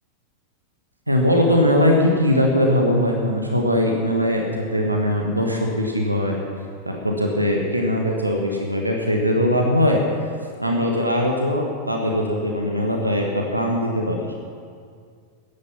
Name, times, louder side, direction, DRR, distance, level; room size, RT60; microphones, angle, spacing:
voice 1, 1.1-6.4 6.8-10.0 10.6-14.3, left 1 dB, 85° right, 1 dB, 1.4 m, -20 dB
15.5 x 10.5 x 5.8 m, 2.2 s
figure-of-eight pair, 90°, 0 cm